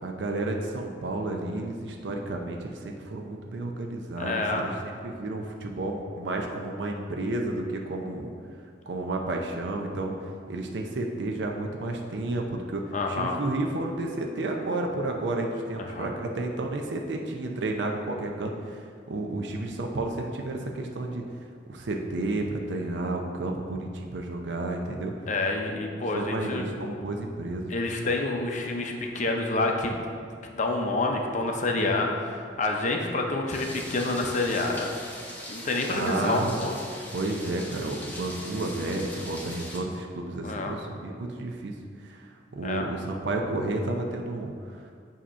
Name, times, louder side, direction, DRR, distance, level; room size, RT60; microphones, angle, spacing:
voice 1, 0.0-8.3 8.9-10.1 10.5-21.2 21.7-25.1 26.1-27.7 35.9-36.6 37.1-41.7 42.0-42.3 42.5-44.8, right 2 dB, 75° right, 2 dB, 0.5 m, -31 dB
voice 2, 4.2-4.7 12.9-13.4 15.8-16.1 25.3-26.7 27.7-30.0 30.4-34.9 35.5-36.7 40.4-40.7 42.6-42.9, left 2 dB, 45° left, 2 dB, 0.6 m, -28 dB
sound 1, 33.5-39.8, left 1 dB, 10° left, 0.8 m, -41 dB
7.4 x 2.9 x 5.5 m, 2.2 s
head